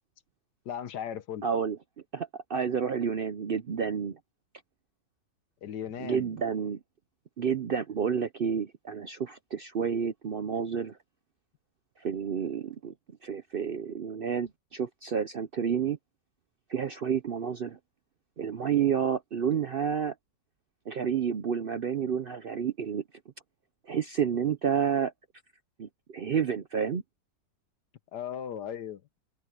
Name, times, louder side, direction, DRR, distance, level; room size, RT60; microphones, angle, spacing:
voice 1, 0.6-1.4 5.6-6.4 28.1-29.0, left 9 dB, 70° left, 1.6 m, -37 dB
voice 2, 1.4-1.8 2.1-4.2 6.0-6.8 7.4-11.0 12.0-12.9 13.2-16.0 16.7-17.8 18.4-20.1 20.9-23.0 23.9-25.1 25.8-27.0, right 7 dB, 75° right, 0.5 m, -30 dB
open air
omnidirectional pair, 1.9 m